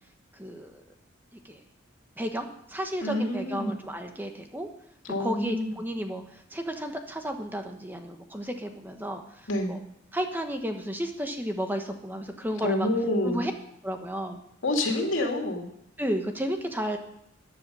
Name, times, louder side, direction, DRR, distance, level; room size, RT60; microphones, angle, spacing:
voice 1, 0.4-0.8 1.5-1.6 2.2-4.7 5.2-9.2 9.7-9.8 10.1-12.9 13.2-13.5 13.8-14.4 16.0-17.0, equal, 10° right, 5 dB, 1.1 m, -32 dB
voice 2, 3.0-3.7 5.1-5.7 9.5-9.7 12.6-13.4 14.6-15.7, left 1 dB, 85° left, 2 dB, 2.4 m, -27 dB
14.0 x 10.0 x 5.5 m, 0.74 s
head